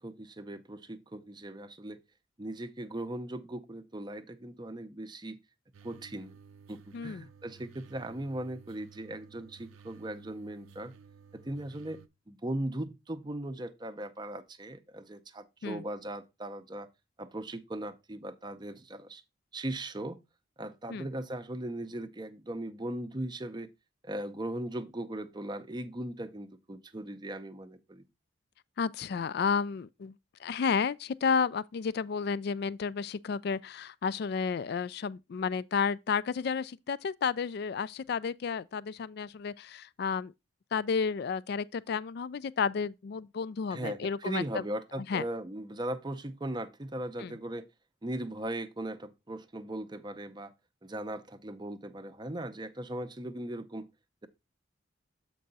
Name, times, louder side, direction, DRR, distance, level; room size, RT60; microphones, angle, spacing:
voice 1, 0.0-2.0 2.4-5.4 5.8-6.3 6.7-10.9 11.3-12.0 12.3-16.9 17.2-19.2 19.5-20.2 20.6-23.7 24.0-28.1 43.7-47.7 48.0-50.5 50.8-53.9, right 1 dB, 20° right, 0.6 m, -38 dB
sound 1, 5.7-12.1, right 6 dB, 90° right, 0.5 m, -55 dB
voice 2, 6.9-7.3 15.6-15.8 20.9-21.1 28.8-30.1 30.4-40.3 40.7-44.6 45.0-45.2 47.2-47.3, left 6 dB, 50° left, 0.3 m, -32 dB
7.6 x 4.6 x 4.0 m
head